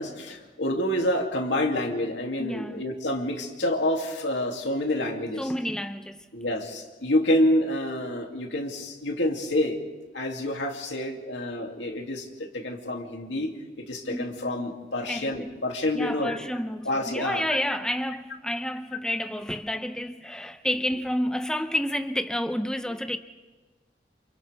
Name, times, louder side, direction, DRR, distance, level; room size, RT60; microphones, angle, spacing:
voice 1, 0.0-5.5 6.3-9.8 10.1-13.5 13.9-16.4 16.8-17.4, left 1 dB, 85° left, 2.7 m, -28 dB
voice 2, 2.4-2.8 5.4-6.2 14.1-14.4 15.1-15.5 15.9-23.2, equal, 5° left, 0.6 m, -30 dB
28.5 x 28.5 x 3.5 m
head